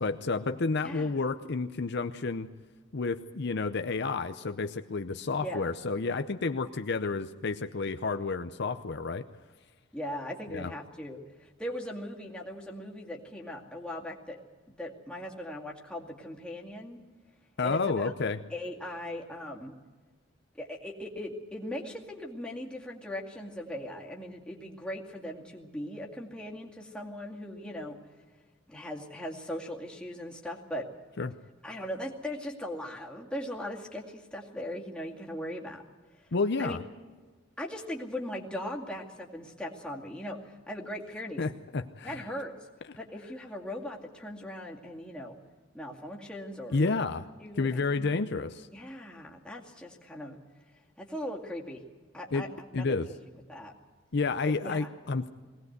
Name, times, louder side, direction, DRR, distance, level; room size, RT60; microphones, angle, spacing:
voice 1, 0.0-2.5 2.9-9.3 10.5-10.7 17.6-18.4 31.2-31.3 36.3-36.8 41.4-42.2 46.7-47.3 47.6-48.7 52.3-52.5 52.7-53.1 54.1-55.3, left 4 dB, 60° left, 8 dB, 0.7 m, -30 dB
voice 2, 0.8-1.2 5.4-5.7 9.9-14.4 14.8-17.0 17.6-18.1 18.5-19.7 20.5-28.0 28.7-30.9 31.6-35.8 36.1-36.3 36.6-36.8 37.6-41.4 42.0-42.5 43.0-45.4 45.7-47.0 47.4-47.7 48.0-48.1 48.7-50.4 51.0-51.8 52.1-53.1 53.5-53.7 54.6-54.9, left 1 dB, 5° left, -2 dB, 2.2 m, -39 dB
21.0 x 18.0 x 8.0 m, 1.3 s
head